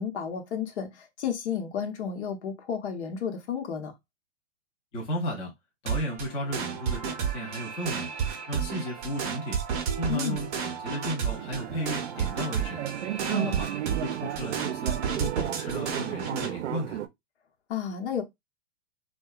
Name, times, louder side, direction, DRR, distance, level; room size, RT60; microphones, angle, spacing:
voice 1, 0.0-3.9 10.1-10.4 13.3-13.6 17.7-18.2, left 7 dB, 65° left, 0.9 m, -32 dB
voice 2, 4.9-5.5 5.8-8.1 8.5-9.6 10.0-12.8 13.3-13.7 14.0-14.9 15.2-17.0, equal, 15° left, 0.5 m, -34 dB
sound 1, 5.9-16.5, right 7 dB, 35° right, 0.6 m, -32 dB
sound 2, 11.3-17.1, right 12 dB, 70° right, 0.5 m, -34 dB
2.6 x 2.2 x 2.3 m
hypercardioid pair, 145°, 36 cm